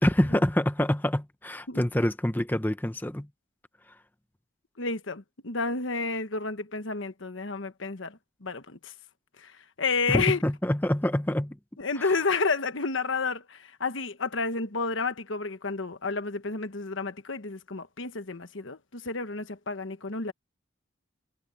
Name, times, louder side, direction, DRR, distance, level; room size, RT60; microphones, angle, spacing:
voice 1, 0.0-3.3 10.1-11.6 12.0-12.1, left 1 dB, 10° left, 0.8 m, -26 dB
voice 2, 4.8-8.9 9.4-9.5 9.8-10.4 11.8-20.3, left 4 dB, 70° left, 1.2 m, -30 dB
head